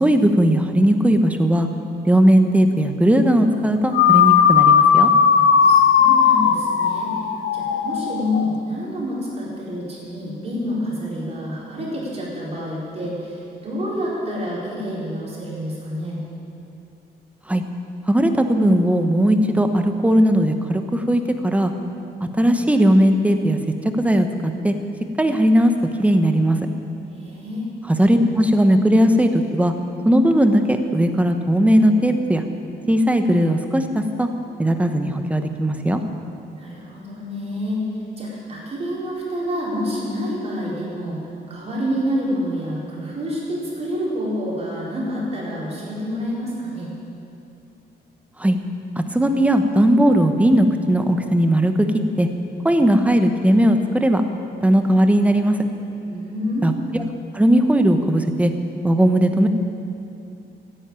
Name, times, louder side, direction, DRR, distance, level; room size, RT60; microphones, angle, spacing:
voice 1, 0.0-1.7 2.0-5.1 17.5-17.6 18.1-21.7 22.4-23.6 24.0-24.7 25.2-25.7 26.0-26.6 27.9-29.7 30.0-32.4 32.9-34.3 34.6-36.0 48.4-48.6 49.1-51.9 52.2-52.3 52.6-54.2 54.6-55.6 56.6-56.7 57.3-58.5 58.8-59.5, equal, 5° right, 6 dB, 1.0 m, -17 dB
sound 1, 3.9-8.5, left 7 dB, 80° left, 1.0 m, -16 dB
voice 2, 5.6-7.2 7.5-16.2 27.1-27.7 36.5-37.8 38.2-41.2 41.5-46.9 56.1-56.7, equal, 35° right, -6 dB, 4.5 m, -28 dB
15.0 x 10.5 x 8.8 m, 2.7 s
cardioid pair, 150°, 19 cm